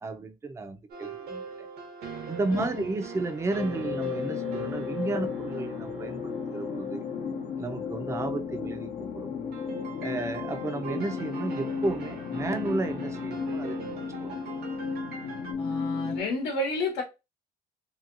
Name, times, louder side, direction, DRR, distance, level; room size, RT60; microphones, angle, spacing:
voice 1, 0.0-1.7 2.3-7.0 7.6-9.3 10.0-14.4, right 2 dB, 15° right, 0.5 m, -33 dB
sound 1, 0.9-8.7 9.5-15.5, right 6 dB, 70° right, 1.0 m, -42 dB
voice 2, 2.5-2.8 15.6-17.0, left 2 dB, 80° left, 1.1 m, -31 dB
sound 2, 3.6-16.2, left 6 dB, 60° left, 0.7 m, -34 dB
3.0 x 2.8 x 2.5 m
cardioid pair, 110°, 17 cm